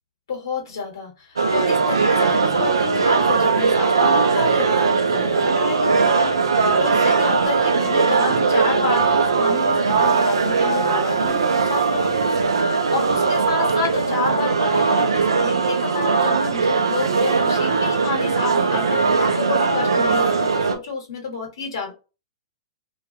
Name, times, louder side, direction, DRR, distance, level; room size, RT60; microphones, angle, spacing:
voice 1, 0.3-12.3 12.7-21.9, left 4 dB, 70° left, 1 dB, 1.0 m, -29 dB
sound 1, 1.4-20.8, right 4 dB, 80° right, 0.4 m, -19 dB
2.3 x 2.2 x 2.7 m, 0.30 s
hypercardioid pair, 110°, 2 cm